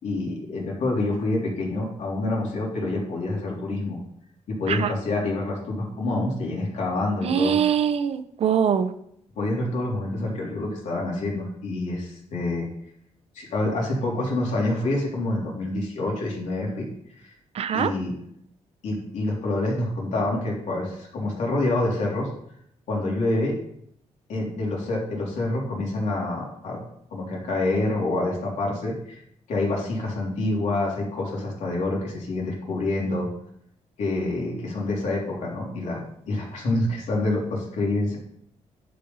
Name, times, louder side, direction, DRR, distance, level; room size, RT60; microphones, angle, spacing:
voice 1, 0.0-4.0 4.5-7.6 9.3-12.7 13.3-16.8 17.2-17.3 17.7-18.1 18.8-22.3 22.9-23.5 24.3-26.8 27.1-29.2 29.5-33.3 34.0-36.0 36.3-38.2, left 2 dB, 80° left, -3 dB, 3.5 m, -27 dB
voice 2, 7.2-8.9 17.5-17.9, right 8 dB, 55° right, 12 dB, 0.7 m, -23 dB
11.0 x 5.4 x 5.5 m, 0.73 s
cardioid pair, 130°, 12 cm